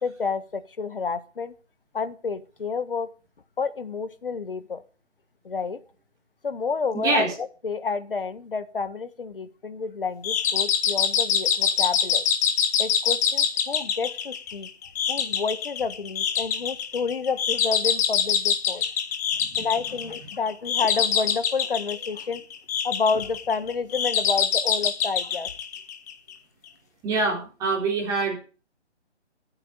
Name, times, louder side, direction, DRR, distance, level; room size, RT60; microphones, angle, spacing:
voice 1, 0.0-1.5 1.9-3.1 3.6-4.8 5.4-5.8 6.4-12.2 12.8-14.7 15.1-18.8 19.6-22.4 22.8-25.5, left 5 dB, 50° left, 11 dB, 1.6 m, -29 dB
voice 2, 6.9-7.3 19.4-19.7 27.0-28.4, right 3 dB, 10° right, -2 dB, 4.2 m, -25 dB
sound 1, 10.2-26.3, left 7 dB, 15° left, 1.1 m, -25 dB
22.0 x 9.0 x 4.1 m, 0.36 s
figure-of-eight pair, 145°, 35 cm